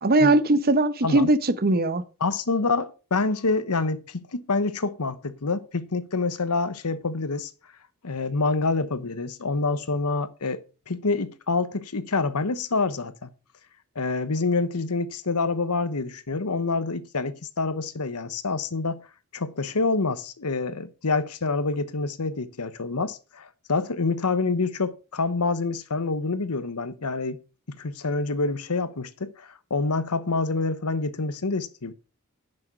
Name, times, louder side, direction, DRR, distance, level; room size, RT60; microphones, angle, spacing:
voice 1, 0.0-2.0, right 2 dB, 45° right, 0.9 m, -20 dB
voice 2, 2.2-7.5 8.0-13.3 13.9-19.1 19.3-27.4 27.7-31.9, left 3 dB, 85° left, 1.0 m, -27 dB
11.0 x 6.6 x 5.0 m
head